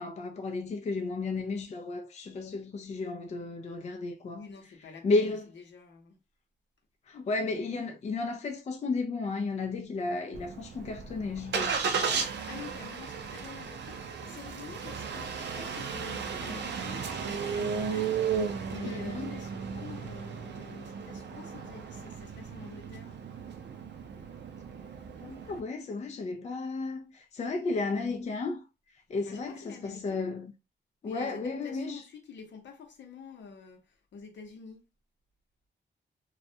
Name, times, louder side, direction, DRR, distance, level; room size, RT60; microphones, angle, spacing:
voice 1, 0.0-4.4 5.0-5.4 7.1-12.3 18.8-19.4 25.2-28.6 29.1-30.5 31.0-32.0, left 3 dB, 35° left, 0.3 m, -33 dB
voice 2, 4.3-6.2 12.5-23.2 29.3-30.3 31.0-34.8, left 5 dB, 75° left, 0.7 m, -47 dB
Engine starting, 10.3-25.6, right 6 dB, 70° right, 0.5 m, -35 dB
2.3 x 2.1 x 2.6 m
wide cardioid pair, 100°, 19 cm